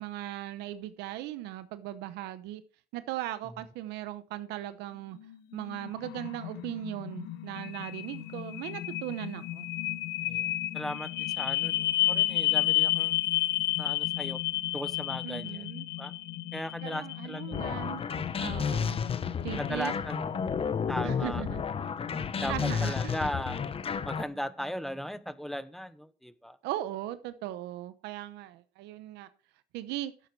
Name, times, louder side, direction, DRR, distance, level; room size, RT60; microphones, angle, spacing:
voice 1, 0.0-2.6 2.9-5.2 5.5-9.7 15.2-15.9 16.8-18.0 18.3-19.0 19.4-19.9 21.0-21.6 22.3-23.1 26.6-29.3 29.7-30.1, right 14 dB, 90° right, 0.9 m, -38 dB
sound 1, 5.2-23.2, left 15 dB, 90° left, 0.9 m, -32 dB
voice 2, 10.2-13.2 13.8-14.4 14.7-15.7 16.0-16.1 16.5-17.4 19.6-20.3 20.9-21.4 22.4-23.6 24.0-26.6, equal, ahead, 0.9 m, -37 dB
sound 2, 17.5-24.2, left 6 dB, 35° left, 0.8 m, -32 dB
12.0 x 7.8 x 4.6 m
cardioid pair, 110°, 17 cm